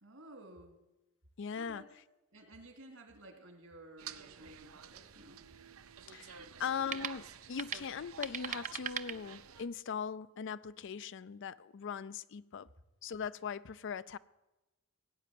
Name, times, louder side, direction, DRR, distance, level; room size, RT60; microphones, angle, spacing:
voice 1, 0.0-0.8 1.6-1.9 2.3-5.5 6.3-6.7, right 1 dB, 70° right, 2.7 m, -54 dB
voice 2, 1.4-1.8 6.1-12.7 13.0-14.2, left 6 dB, 60° left, 0.5 m, -40 dB
sound 1, 4.0-9.7, right 8 dB, 90° right, 0.7 m, -51 dB
sound 2, 4.4-9.8, right 8 dB, 35° right, 0.6 m, -44 dB
17.5 x 9.1 x 7.6 m
head